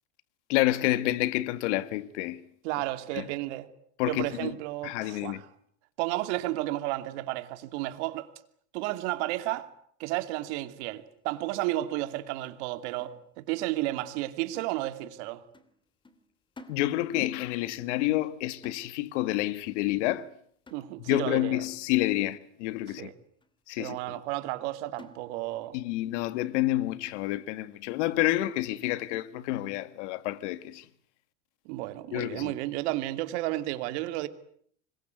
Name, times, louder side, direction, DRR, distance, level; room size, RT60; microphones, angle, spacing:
voice 1, 0.5-2.4 3.1-3.3 4.0-4.5 4.8-5.4 16.7-20.3 21.1-23.1 23.7-24.2 25.7-30.9 32.1-32.5, left 16 dB, 75° left, 1.8 m, -29 dB
voice 2, 2.6-3.7 4.0-5.5 6.0-8.3 8.7-9.7 10.0-15.4 20.7-21.6 23.0-23.1 23.8-25.8 31.6-34.3, right 16 dB, 70° right, 2.7 m, -32 dB
sound 1, 12.4-13.7 14.0-14.2 14.5-15.2 15.5-15.8 16.0-17.3 17.6-17.8 18.1-18.4 18.6-19.3 19.6-19.9 20.2-20.4 20.7-21.3 21.8-21.9 22.3-22.5 22.9-23.5 23.9-24.1 24.5-24.7 25.0-25.7 26.0-26.1 26.5-26.7 27.1-27.6 28.1-28.2 28.6-28.8, left 2 dB, 15° left, 3.1 m, -55 dB
26.0 x 22.0 x 9.3 m
supercardioid pair, 125°, 35 cm